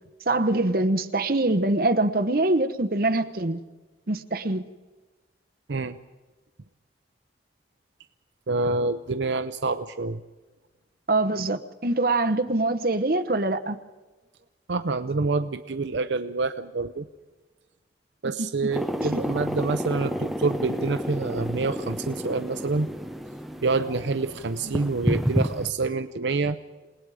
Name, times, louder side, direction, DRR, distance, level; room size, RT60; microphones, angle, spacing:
voice 1, 0.3-3.6 4.1-4.6 11.1-13.8 19.0-19.2, right 2 dB, 50° right, 1.1 m, -24 dB
voice 2, 8.5-10.2 14.7-17.1 18.2-22.9 23.6-26.6, right 3 dB, 75° right, 0.7 m, -27 dB
sound 1, 18.7-25.7, equal, ahead, 0.7 m, -30 dB
28.5 x 18.5 x 4.9 m
head